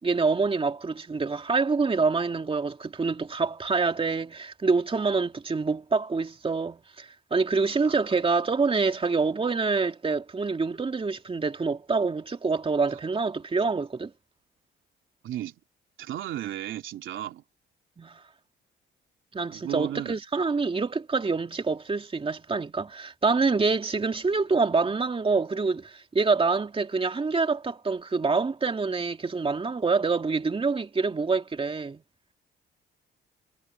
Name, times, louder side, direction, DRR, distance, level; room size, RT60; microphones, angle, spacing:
voice 1, 0.0-14.1 18.0-18.2 19.3-32.0, right 4 dB, 30° right, 2.7 m, -26 dB
voice 2, 7.6-8.0 15.2-15.5 16.0-17.4 19.5-20.2, right 12 dB, 80° right, 3.2 m, -35 dB
cardioid pair, 90°, 20 cm